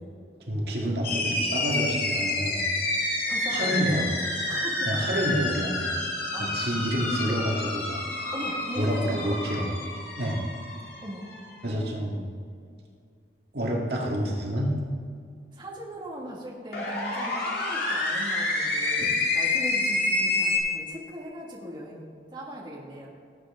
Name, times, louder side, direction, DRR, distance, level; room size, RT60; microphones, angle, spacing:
voice 1, 0.5-2.6 3.5-4.1 4.8-6.0 6.4-8.0 8.8-9.7 10.2-10.5 11.6-12.2 13.5-14.7 19.0-19.1, equal, 65° right, -2 dB, 1.9 m, -28 dB
sound 1, 1.0-11.4 16.7-20.6, left 2 dB, 55° left, 2.7 m, -28 dB
voice 2, 3.3-4.0 4.5-4.9 6.3-6.9 7.2-7.4 8.3-9.4 11.0-11.3 15.5-23.1, equal, 25° right, -4 dB, 2.0 m, -38 dB
18.0 x 8.4 x 3.7 m, 2.2 s
head